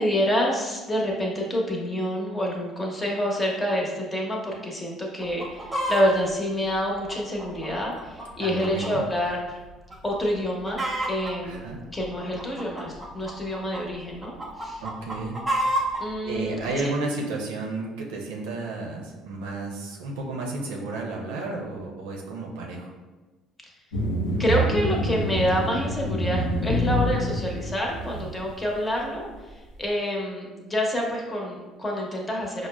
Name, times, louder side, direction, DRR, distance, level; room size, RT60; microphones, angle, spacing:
voice 1, 0.0-9.6 10.0-10.8 11.1-11.6 11.9-14.8 16.0-16.9 24.4-32.7, equal, 25° left, -1 dB, 0.9 m, -27 dB
Chicken rooster, 5.2-6.1 6.7-8.9 9.2-9.3 9.9-10.2 10.4-11.3 12.0-13.8 14.2-16.0 16.7-16.8, right 1 dB, 20° right, 0.8 m, -29 dB
voice 2, 8.4-9.0 11.4-11.8 14.8-15.4 16.2-22.9, right 2 dB, 85° right, -1 dB, 0.5 m, -32 dB
sound 1, 23.9-28.5, equal, 90° left, 0.5 m, -26 dB
4.8 x 2.0 x 2.2 m, 1.2 s
hypercardioid pair, 65°, 0 cm